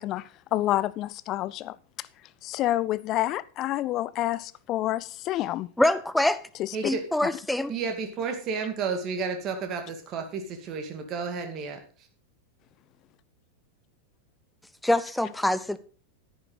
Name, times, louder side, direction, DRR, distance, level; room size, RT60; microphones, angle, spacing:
voice 1, 0.0-1.8 2.4-5.7 6.6-6.7, left 14 dB, 35° left, 0.5 m, -28 dB
voice 2, 5.8-6.4 6.8-7.7 14.8-15.8, left 1 dB, 5° left, 0.7 m, -24 dB
voice 3, 6.7-7.0 7.7-11.8, right 5 dB, 35° right, 2.2 m, -32 dB
10.0 x 10.0 x 4.0 m
figure-of-eight pair, 90°, 0 cm